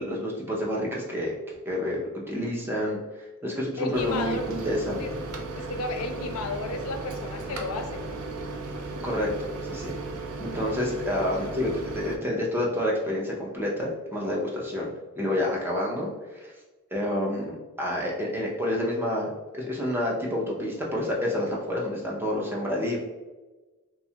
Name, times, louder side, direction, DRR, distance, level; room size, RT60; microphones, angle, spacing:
voice 1, 0.0-5.2 9.0-10.0 10.4-16.5 16.9-23.0, left 1 dB, 10° right, -3 dB, 0.4 m, -29 dB
voice 2, 3.8-4.5 5.0-5.1 5.5-8.2 10.5-10.9 11.4-11.6, left 3 dB, 80° left, 5 dB, 0.4 m, -33 dB
Microwave oven, 3.9-12.2, right 3 dB, 80° right, 0.4 m, -35 dB
2.7 x 2.2 x 2.7 m, 1.2 s
head